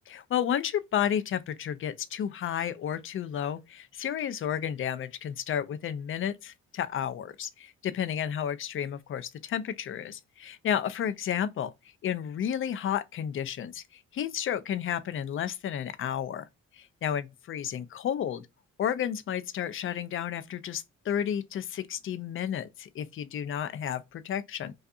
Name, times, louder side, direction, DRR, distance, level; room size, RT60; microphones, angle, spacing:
voice 1, 0.0-11.7 12.0-16.5 16.7-18.5 18.8-24.7, left 9 dB, 45° left, 0.4 m, -32 dB
2.6 x 2.4 x 2.3 m
cardioid pair, 90°, 30 cm